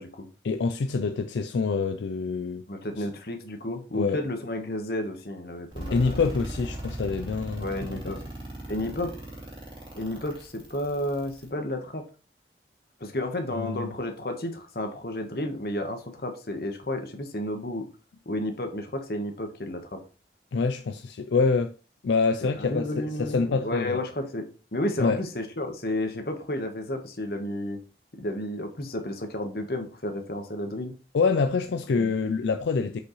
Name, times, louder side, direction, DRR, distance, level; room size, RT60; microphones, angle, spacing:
voice 1, 0.4-2.6 3.0-3.1 3.9-4.2 5.9-8.0 13.6-13.9 20.5-21.7 22.0-24.0 25.0-25.2 31.1-33.0, left 4 dB, 85° left, 0.4 m, -26 dB
voice 2, 2.7-6.2 7.6-8.2 8.7-9.1 9.9-12.0 13.0-17.8 18.2-20.0 22.4-27.8 28.2-30.9 32.0-32.1, left 1 dB, 60° left, 1.2 m, -32 dB
sound 1, 5.7-11.5, right 1 dB, 30° right, 2.2 m, -38 dB
6.3 x 5.4 x 3.1 m
head